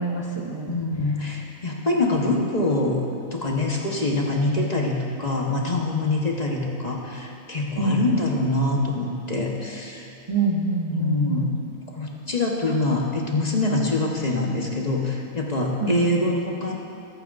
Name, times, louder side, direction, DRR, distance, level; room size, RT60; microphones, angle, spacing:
voice 1, 0.0-0.7 1.2-1.3 7.8-8.0 10.3-11.5 12.6-12.7 15.8-16.0, right 3 dB, 25° right, -2 dB, 0.6 m, -26 dB
voice 2, 0.7-3.0 3.3-10.1 10.9-11.5 11.9-16.8, left 2 dB, 30° left, -2 dB, 1.2 m, -24 dB
24.0 x 9.3 x 2.6 m, 2.8 s
omnidirectional pair, 1.4 m